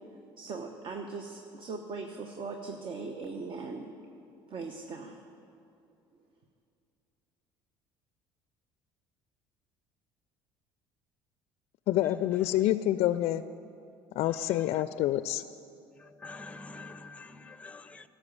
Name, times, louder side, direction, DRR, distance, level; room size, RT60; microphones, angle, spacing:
voice 1, 0.4-3.9 4.5-5.2, right 4 dB, 45° right, 0.9 m, -39 dB
voice 2, 11.9-13.4 14.2-15.4, left 13 dB, 60° left, 0.4 m, -27 dB
voice 3, 16.2-18.1, left 3 dB, 10° left, 0.6 m, -46 dB
11.5 x 7.3 x 9.7 m
hypercardioid pair, 70°, 12 cm